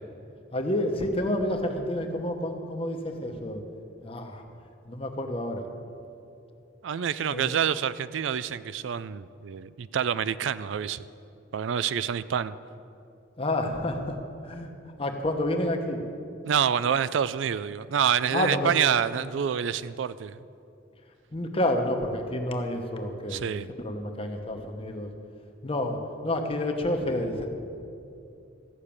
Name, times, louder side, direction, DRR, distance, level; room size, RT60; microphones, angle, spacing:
voice 1, 0.5-3.6 4.0-4.4 4.9-5.6 7.3-7.6 13.4-14.2 14.4-14.7 15.0-16.0 18.3-18.7 21.3-25.1 25.6-26.0 26.2-27.5, left 1 dB, 30° left, 4 dB, 1.1 m, -29 dB
voice 2, 6.8-11.0 11.5-12.5 16.5-20.4 23.3-23.7, right 8 dB, 80° right, 16 dB, 0.4 m, -27 dB
14.0 x 6.5 x 8.7 m, 2.6 s
head